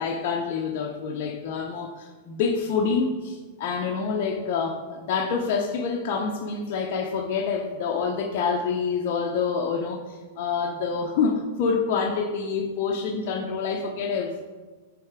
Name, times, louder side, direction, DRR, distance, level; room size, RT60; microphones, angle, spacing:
voice 1, 0.0-14.4, left 5 dB, 50° left, 0 dB, 0.7 m, -27 dB
8.5 x 3.2 x 4.7 m, 1.3 s
supercardioid pair, 150°, 0 cm